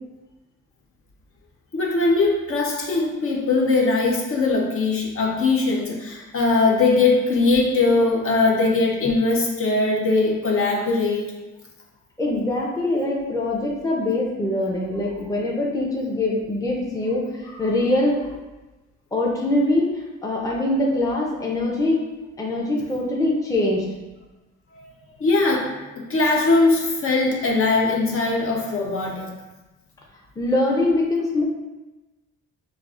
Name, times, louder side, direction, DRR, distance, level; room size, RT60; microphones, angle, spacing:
voice 1, 1.7-11.3 24.7-24.9 25.2-29.3, left 3 dB, 45° left, -1 dB, 0.7 m, -20 dB
voice 2, 12.2-18.2 19.1-22.0 22.4-23.9 30.4-31.5, left 1 dB, 10° left, -3 dB, 0.7 m, -23 dB
4.5 x 2.5 x 2.4 m, 1.1 s
cardioid pair, 90°, 30 cm